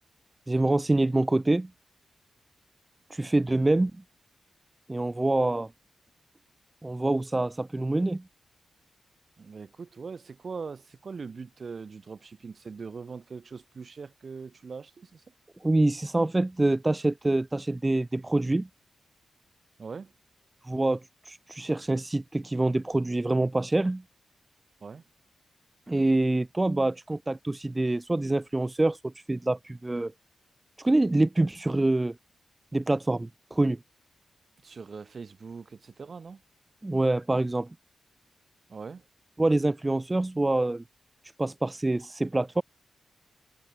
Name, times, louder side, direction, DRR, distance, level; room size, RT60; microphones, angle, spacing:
voice 1, 0.5-1.7 3.1-3.9 4.9-5.7 6.8-8.2 15.6-18.7 20.6-21.0 21.3-24.0 25.9-30.1 30.8-32.1 32.7-33.8 36.8-37.7 39.4-40.8 41.4-42.6, right 2 dB, 15° right, 0.4 m, -26 dB
voice 2, 9.4-15.2 19.8-20.1 24.8-25.0 34.6-36.4 38.7-39.1, right 5 dB, 40° right, 1.0 m, -41 dB
wide cardioid pair, 165°, 0 cm